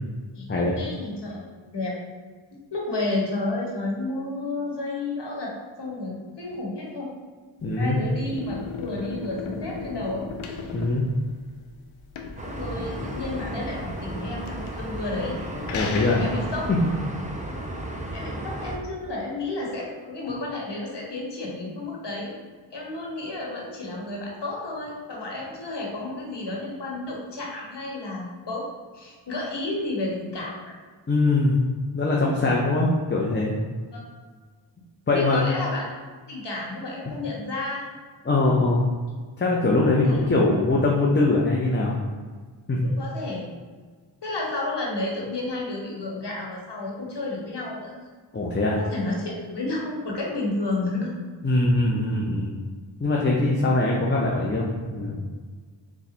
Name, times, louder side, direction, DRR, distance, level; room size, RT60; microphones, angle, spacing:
voice 1, 0.3-2.0 2.7-5.5 5.8-7.1 7.8-10.3 12.4-15.4 16.1-16.6 18.1-22.3 22.7-28.6 28.9-30.6 33.9-34.0 35.1-36.0 36.3-37.9 40.0-40.2 42.8-43.4 44.2-47.9 48.8-51.1, left 2 dB, 60° left, -3 dB, 1.3 m, -31 dB
sound 1, 7.6-16.9, left 4 dB, 85° left, 0.6 m, -37 dB
voice 2, 7.6-8.0 10.7-11.0 15.7-16.2 31.1-31.6 31.9-33.5 35.1-35.4 37.1-37.2 38.2-38.8 39.4-41.9 42.7-42.8 48.3-48.8 51.4-52.6 53.0-55.2, left 2 dB, 25° left, -3 dB, 0.7 m, -22 dB
sound 2, 12.4-18.8, right 1 dB, 15° right, 0.7 m, -34 dB
4.0 x 2.4 x 4.2 m, 1.5 s
cardioid pair, 45°, 46 cm